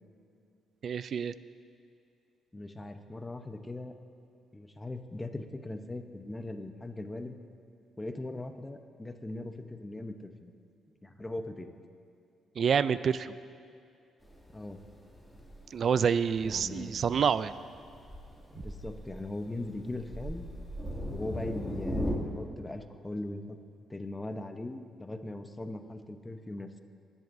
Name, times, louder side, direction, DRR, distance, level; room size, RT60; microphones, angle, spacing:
voice 1, 0.8-1.3 12.6-13.3 15.7-17.5, right 7 dB, 55° right, 15 dB, 0.4 m, -27 dB
voice 2, 2.5-3.9 4.5-7.3 8.0-10.5 11.0-11.7 14.5-14.8 16.4-16.9 18.5-20.4 21.1-23.6 23.9-26.8, left 2 dB, 15° left, 7 dB, 0.8 m, -40 dB
Thunder, 14.2-22.1, equal, ahead, 2.4 m, -39 dB
19.5 x 11.0 x 2.7 m, 2.6 s
cardioid pair, 90°, 0 cm